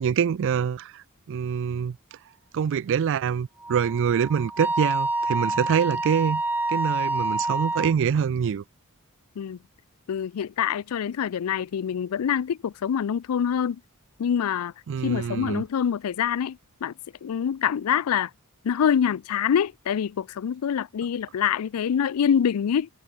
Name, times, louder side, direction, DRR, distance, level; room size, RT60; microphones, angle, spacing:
voice 1, 0.0-2.0 2.5-6.4 6.7-8.6 14.9-15.6, right 7 dB, 60° right, 0.3 m, -25 dB
Wind instrument woodwind instrument, 3.6-7.9, right 2 dB, 10° right, 1.3 m, -27 dB
voice 2, 10.1-13.8 14.2-14.7 15.0-16.9 17.2-18.3 18.6-22.9, left 8 dB, 80° left, 0.4 m, -25 dB
head